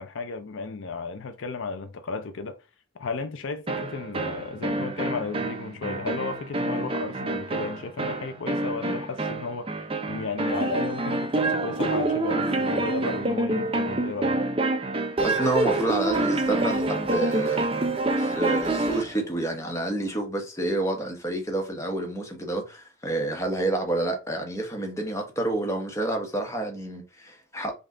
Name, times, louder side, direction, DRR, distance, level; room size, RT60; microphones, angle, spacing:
voice 1, 0.0-2.6 3.0-14.4, left 4 dB, 65° left, 0.5 m, -34 dB
sound 1, 3.7-19.1, right 2 dB, 25° right, 0.6 m, -27 dB
voice 2, 15.2-17.7 18.2-27.8, right 2 dB, 15° left, 1.0 m, -29 dB
5.2 x 2.4 x 3.7 m
head